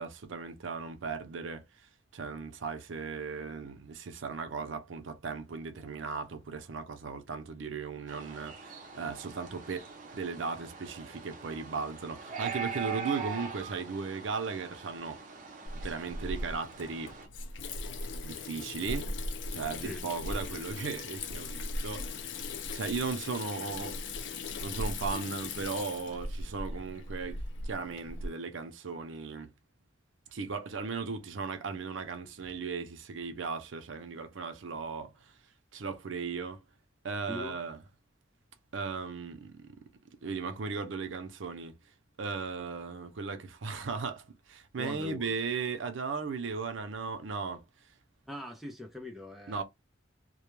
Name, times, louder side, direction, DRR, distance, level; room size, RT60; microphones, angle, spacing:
voice 1, 0.0-1.6 2.1-9.9 10.1-15.2 15.7-17.1 18.2-19.2 19.5-22.1 22.7-24.0 24.6-29.5 30.3-35.1 35.7-36.6 37.0-37.8 38.7-39.7 40.2-41.8 42.2-47.6 49.5-49.6, right 5 dB, 85° right, 0.5 m, -37 dB
sound 1, 8.1-17.3, right 6 dB, 45° right, 0.7 m, -42 dB
Water tap faucet / Sink (filling or washing), 15.7-28.3, left 2 dB, 70° left, 0.4 m, -38 dB
voice 2, 37.3-37.6 44.8-45.4 48.3-49.6, left 1 dB, ahead, 0.4 m, -42 dB
2.2 x 2.1 x 3.0 m
head